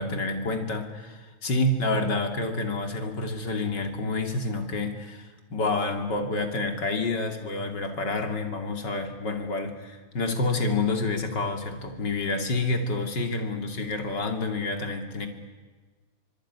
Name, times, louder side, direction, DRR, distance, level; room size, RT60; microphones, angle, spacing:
voice 1, 0.0-15.3, left 2 dB, 60° left, 5 dB, 3.4 m, -28 dB
25.0 x 24.5 x 9.7 m, 1.4 s
omnidirectional pair, 2.1 m